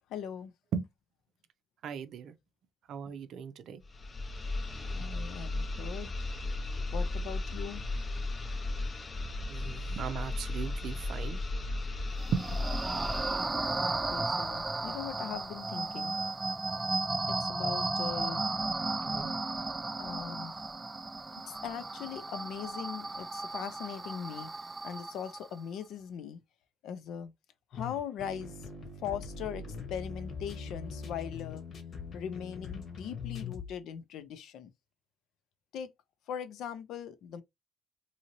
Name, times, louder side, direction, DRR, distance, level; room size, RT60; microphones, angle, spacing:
voice 1, 0.1-0.5 4.9-6.1 6.8-7.8 13.8-16.2 17.3-18.4 20.0-20.6 21.5-24.5 24.8-26.4 26.8-27.3 27.7-28.7 29.0-29.6 29.9-31.6 32.1-34.7 35.7-35.9 36.3-37.4, left 8 dB, 85° left, 0.5 m, -40 dB
voice 2, 1.8-2.3 2.9-3.8 9.5-11.4 12.3-12.6 19.0-19.3, right 7 dB, 75° right, 0.5 m, -37 dB
sound 1, 3.8-13.5, left 2 dB, 35° left, 0.5 m, -35 dB
sound 2, 12.2-25.6, right 3 dB, 20° right, 0.3 m, -34 dB
sound 3, 27.7-33.8, left 5 dB, 60° left, 1.0 m, -42 dB
2.8 x 2.7 x 2.9 m
cardioid pair, 90°, 0 cm